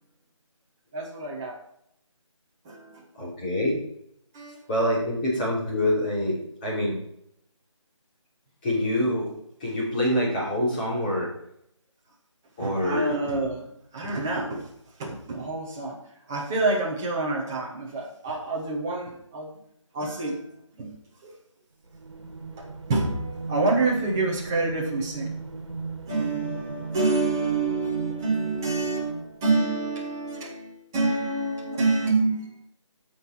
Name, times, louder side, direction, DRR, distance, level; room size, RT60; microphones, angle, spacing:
voice 1, 0.9-1.6 2.6-3.0 4.3-4.6 12.6-14.7 15.0-16.0 16.3-19.5 19.9-20.9 21.2-21.4 22.6-25.4 26.1-32.5, right 3 dB, 5° right, -3 dB, 0.7 m, -27 dB
voice 2, 3.1-3.8 4.7-6.4 6.6-6.9 8.6-9.3 9.6-11.3 12.6-13.1, left 1 dB, 15° left, -6 dB, 3.1 m, -25 dB
sound 1, 21.9-29.6, right 4 dB, 65° right, 1.8 m, -37 dB
14.0 x 5.6 x 4.4 m, 0.74 s
figure-of-eight pair, 170°, 16 cm